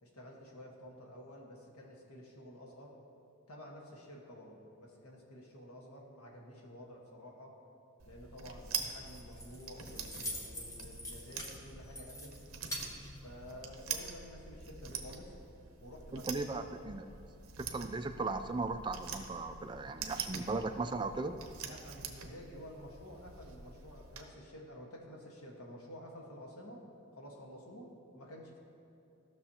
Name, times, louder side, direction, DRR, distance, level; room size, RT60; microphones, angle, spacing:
voice 1, 0.0-2.9 3.5-7.5 8.0-12.3 13.2-15.4 15.8-16.7 21.6-26.8 27.1-28.6, left 1 dB, 90° left, -1 dB, 1.5 m, -51 dB
sound 1, 8.0-24.2, right 6 dB, 70° right, 0.8 m, -45 dB
Keys jangling, 8.8-13.9, left 1 dB, 15° left, 0.9 m, -46 dB
voice 2, 16.1-17.1 17.6-21.3, right 3 dB, 20° right, 7 dB, 0.3 m, -37 dB
15.5 x 6.3 x 2.9 m, 2.5 s
head